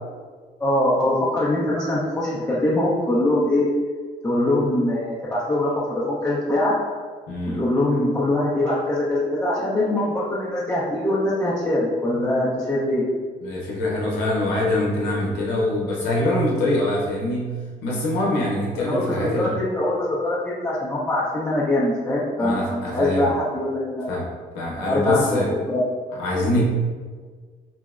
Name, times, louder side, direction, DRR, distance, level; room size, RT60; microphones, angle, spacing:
voice 1, 0.6-3.7 4.2-6.7 7.6-13.0 18.8-24.1 24.8-25.3 25.7-26.0, left 1 dB, 15° left, -9 dB, 0.5 m, -23 dB
voice 2, 7.3-7.6 13.4-17.5 17.8-19.5 22.4-23.3 24.1-24.2 24.5-25.5 26.2-26.6, left 1 dB, 90° left, -4 dB, 0.7 m, -24 dB
3.9 x 2.0 x 2.3 m, 1.5 s
cardioid pair, 110°, 17 cm